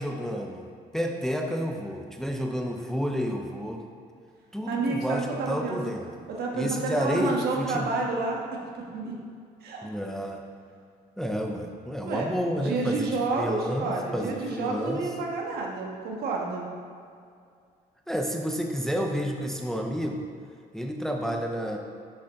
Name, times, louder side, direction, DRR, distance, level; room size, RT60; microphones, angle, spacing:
voice 1, 0.0-3.8 4.5-6.3 6.5-7.9 9.8-10.4 11.2-15.1 18.1-20.3 20.7-21.8, equal, 5° left, 2 dB, 0.6 m, -30 dB
voice 2, 4.7-5.8 6.4-8.4 8.7-9.1 9.6-9.9 12.0-12.3 12.6-16.7, right 3 dB, 70° right, -1 dB, 1.6 m, -29 dB
7.7 x 6.5 x 3.8 m, 2.3 s
cardioid pair, 110°, 17 cm